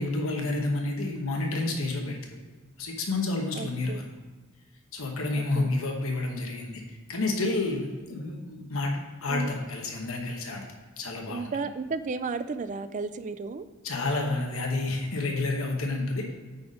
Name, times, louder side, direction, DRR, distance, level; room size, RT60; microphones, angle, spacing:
voice 1, 0.0-2.4 2.8-4.0 4.9-10.6 11.0-11.5 13.8-16.3, left 2 dB, 70° left, 1 dB, 1.1 m, -30 dB
voice 2, 3.6-4.1 5.4-5.7 9.3-9.5 11.3-13.7, right 4 dB, 35° right, 12 dB, 0.3 m, -34 dB
9.2 x 4.2 x 5.0 m, 1.4 s
head